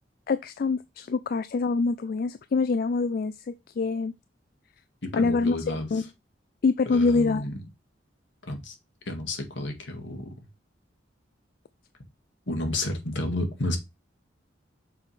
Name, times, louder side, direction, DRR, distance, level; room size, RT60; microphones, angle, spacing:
voice 1, 0.3-4.1 5.1-6.0 6.6-7.4, left 4 dB, 50° left, 0.4 m, -25 dB
voice 2, 5.0-5.9 6.9-7.5 8.5-8.7 9.0-10.3 12.5-13.8, left 1 dB, 75° left, 1.8 m, -31 dB
6.9 x 3.2 x 5.6 m
head